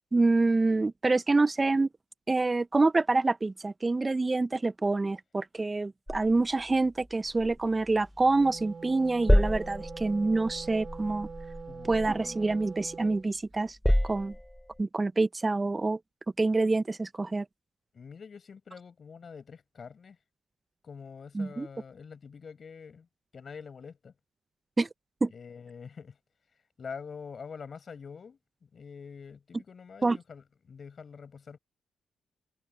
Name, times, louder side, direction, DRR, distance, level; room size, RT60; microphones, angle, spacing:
voice 1, 0.1-1.9 2.3-11.3 11.9-13.8 14.0-14.3 14.8-16.0 16.4-17.4 21.3-21.7 24.8-24.9 25.2-25.3 30.0-30.2, right 3 dB, 30° right, 0.7 m, -26 dB
sound 1, 6.1-8.6 8.9-13.1 13.5-14.8, equal, 5° left, 4.2 m, -30 dB
Wind instrument woodwind instrument, 8.1-13.3, right 5 dB, 45° right, 4.4 m, -44 dB
voice 2, 11.7-12.2 17.9-20.2 20.8-23.1 23.3-24.1 25.3-26.2 26.8-31.6, left 6 dB, 50° left, 5.8 m, -45 dB
hypercardioid pair, 45°, 0 cm